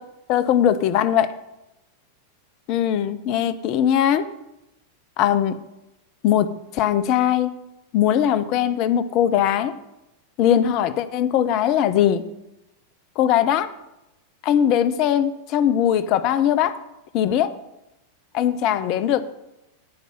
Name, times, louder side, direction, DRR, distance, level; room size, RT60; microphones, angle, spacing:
voice 1, 0.3-1.3 2.7-4.3 5.2-5.6 6.2-7.5 7.9-9.8 10.4-12.2 13.2-13.7 14.4-16.8 17.1-17.6 18.3-19.2, left 10 dB, 40° left, 14 dB, 0.6 m, -20 dB
11.0 x 5.3 x 7.4 m, 0.92 s
figure-of-eight pair, 90°, 0 cm